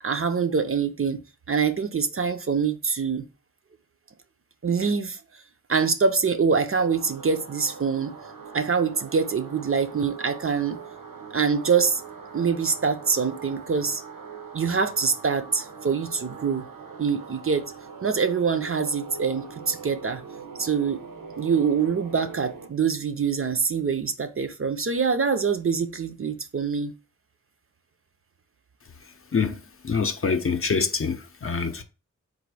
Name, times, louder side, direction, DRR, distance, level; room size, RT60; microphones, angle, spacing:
voice 1, 0.0-1.2 1.5-3.2 4.6-5.4 5.7-8.1 8.5-10.8 11.3-12.0 12.3-14.0 14.5-16.6 17.0-17.6 18.0-20.2 20.6-21.0 21.4-26.9, right 5 dB, 40° right, 0.5 m, -25 dB
sound 1, 6.8-22.7, right 5 dB, 80° right, 0.8 m, -42 dB
voice 2, 29.3-31.8, left 5 dB, 40° left, 0.6 m, -26 dB
4.0 x 2.5 x 4.7 m
wide cardioid pair, 90°, 33 cm